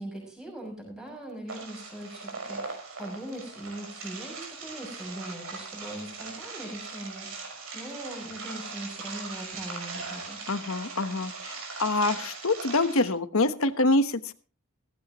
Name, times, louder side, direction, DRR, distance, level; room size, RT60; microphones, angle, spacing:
voice 1, 0.0-10.4, right 1 dB, 5° right, 0 dB, 6.2 m, -40 dB
sound 1, 1.5-13.1, right 4 dB, 65° right, 5.7 m, -40 dB
voice 2, 10.5-14.3, left 2 dB, 65° left, 11 dB, 1.1 m, -26 dB
16.5 x 15.5 x 3.0 m, 0.34 s
head